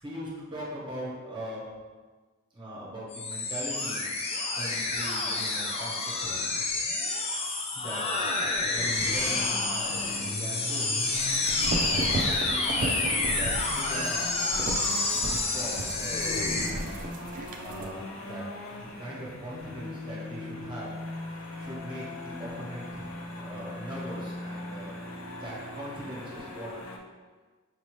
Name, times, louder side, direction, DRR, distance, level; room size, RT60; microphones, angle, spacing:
voice 1, 0.0-1.7 2.5-4.0 4.6-6.6 7.7-8.0 8.7-11.1 11.8-14.3 15.2-16.9 17.6-18.4 18.7-20.9 21.6-23.1 23.4-24.9 25.4-26.9, equal, 25° right, -6 dB, 1.0 m, -40 dB
sound 1, 3.1-16.7, left 3 dB, 30° left, 0.5 m, -29 dB
sound 2, 8.8-27.0, left 2 dB, 80° left, 0.6 m, -40 dB
sound 3, 11.1-17.9, right 2 dB, 40° right, 0.4 m, -35 dB
5.9 x 2.7 x 3.0 m, 1.4 s
head